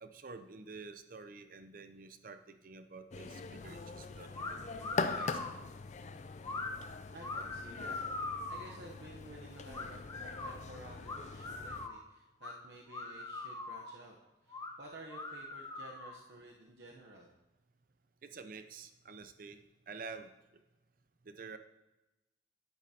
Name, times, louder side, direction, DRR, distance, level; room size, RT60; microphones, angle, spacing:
voice 1, 0.0-4.6 4.9-5.6 18.2-19.6 19.9-20.3 21.3-21.6, right 4 dB, 50° right, 9 dB, 0.6 m, -49 dB
sound 1, 3.1-11.9, left 4 dB, 40° left, 0.4 m, -42 dB
sound 2, 4.3-4.5 4.8-5.6 6.4-6.7 7.2-8.7 9.7-10.5 11.0-12.0 12.4-12.5 12.9-13.9 14.5-14.7 15.1-16.2, left 3 dB, 20° left, 0.9 m, -41 dB
voice 2, 7.1-8.0 8.5-14.2 14.4-17.3, right 2 dB, 70° right, -1 dB, 0.9 m, -53 dB
11.0 x 9.0 x 2.8 m, 1.0 s
head